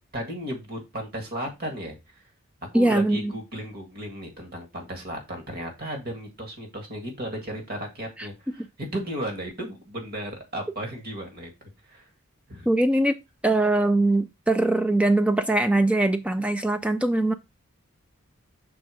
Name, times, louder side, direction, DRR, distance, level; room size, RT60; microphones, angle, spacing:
voice 1, 0.1-2.2 2.7-11.5 11.9-12.1 12.5-12.7, right 1 dB, 40° right, 1.8 m, -35 dB
voice 2, 2.7-3.3 12.7-13.2 13.4-17.3, right 2 dB, 5° right, 0.3 m, -22 dB
6.1 x 3.9 x 4.9 m
head